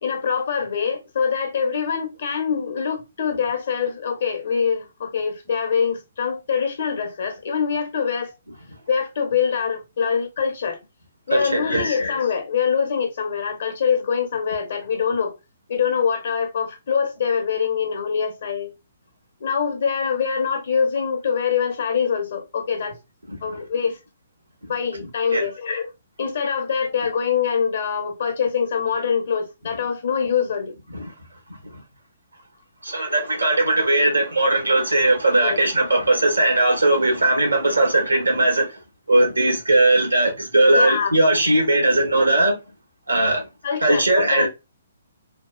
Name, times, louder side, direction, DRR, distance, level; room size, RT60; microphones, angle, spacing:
voice 1, 0.0-8.3 8.9-10.8 11.3-15.3 15.7-18.7 19.4-23.0 23.4-24.0 24.7-25.9 26.2-30.8 35.4-35.6 40.7-41.2 43.6-44.5, left 6 dB, 55° left, 1.1 m, -24 dB
voice 2, 11.3-11.9 23.3-23.4 25.3-25.4 30.9-31.1 32.8-38.8 39.1-42.6 43.1-43.4 43.8-44.5, right 2 dB, 85° right, 1.3 m, -19 dB
3.4 x 2.4 x 2.3 m
figure-of-eight pair, 130°, 0 cm